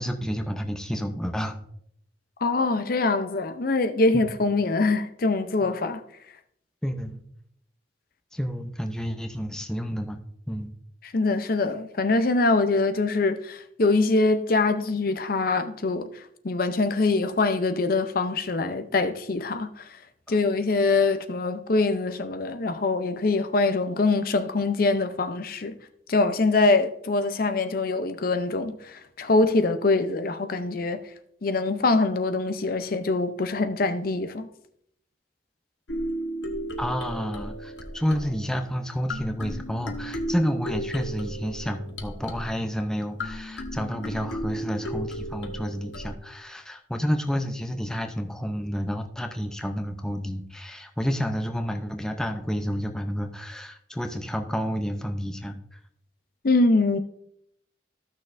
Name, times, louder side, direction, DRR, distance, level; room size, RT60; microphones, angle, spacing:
voice 1, 0.0-1.6 4.1-4.3 6.8-7.2 8.3-10.2 10.5-10.7 36.8-55.8, equal, 5° left, 0.6 m, -30 dB
voice 2, 2.4-6.0 11.0-20.0 20.3-25.8 26.1-31.0 31.4-34.5 56.4-57.0, left 3 dB, 55° left, 0.6 m, -24 dB
sound 1, 35.9-46.1, equal, 75° left, 1.0 m, -35 dB
14.5 x 6.3 x 2.6 m
head